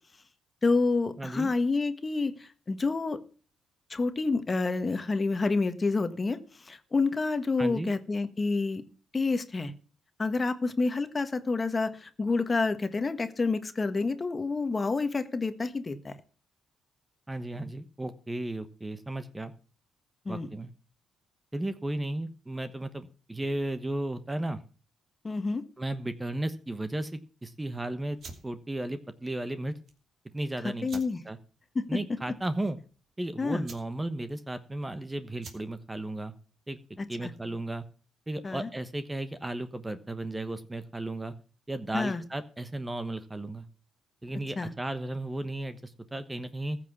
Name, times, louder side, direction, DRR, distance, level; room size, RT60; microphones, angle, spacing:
voice 1, 0.6-3.2 3.9-8.8 9.1-9.7 10.2-16.1 20.2-20.5 25.2-25.6 30.6-31.2 31.7-32.0 33.4-33.6 37.0-37.3 38.4-38.7 41.9-42.2 44.6-44.7, left 3 dB, 30° left, 10 dB, 1.4 m, -28 dB
voice 2, 1.2-1.5 7.6-7.9 17.3-19.5 20.3-20.7 21.5-24.6 25.8-28.2 28.4-29.7 30.3-31.4 31.9-32.8 33.2-36.3 36.7-36.8 37.1-37.8 38.3-41.3 41.7-43.6 44.2-46.8, right 1 dB, 15° right, 11 dB, 1.1 m, -34 dB
sound 1, 28.1-37.6, right 4 dB, 55° right, 2.7 m, -53 dB
14.5 x 6.1 x 7.1 m, 0.38 s
cardioid pair, 90°, 0 cm